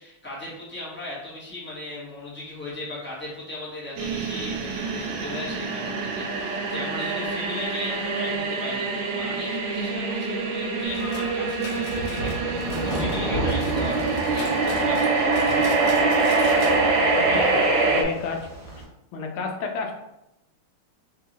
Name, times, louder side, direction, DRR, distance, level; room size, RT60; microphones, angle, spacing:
voice 1, 0.0-15.5, left 1 dB, 15° left, -8 dB, 0.4 m, -37 dB
sound 1, 4.0-18.0, right 3 dB, 75° right, 1.4 m, -25 dB
sound 2, 10.8-18.8, right 1 dB, 45° right, 1.5 m, -33 dB
sound 3, 10.9-13.2 13.5-16.8 17.1-17.2 17.6-17.7 18.2-18.3, left 2 dB, 60° left, 1.1 m, -40 dB
voice 2, 17.1-18.8 19.1-19.9, left 4 dB, 80° left, 3 dB, 1.5 m, -32 dB
3.5 x 3.0 x 2.9 m, 0.88 s
omnidirectional pair, 2.4 m